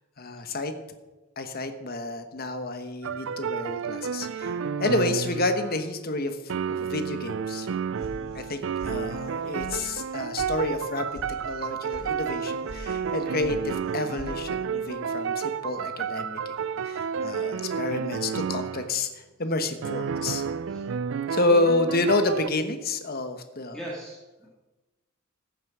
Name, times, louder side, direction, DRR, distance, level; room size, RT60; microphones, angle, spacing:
voice 1, 0.2-0.7 1.4-6.4 6.7-7.7 8.3-11.2 11.5-16.5 16.8-19.1 19.4-20.4 21.3-23.8, left 2 dB, 45° left, 8 dB, 1.1 m, -29 dB
sound 1, 3.0-5.9 6.5-18.9 19.8-22.5, right 6 dB, 65° right, 0.4 m, -31 dB
voice 2, 7.8-8.5 20.2-20.4 20.7-20.9 23.6-24.5, right 1 dB, 5° left, -5 dB, 2.0 m, -42 dB
sound 2, 8.0-8.5 8.8-9.3 9.6-9.7 10.0-10.5 10.8-11.3 11.6-12.0 12.4-12.8 13.1-13.6 13.8-14.3, left 1 dB, 85° left, 2.7 m, -43 dB
15.0 x 7.3 x 6.1 m, 1.1 s
head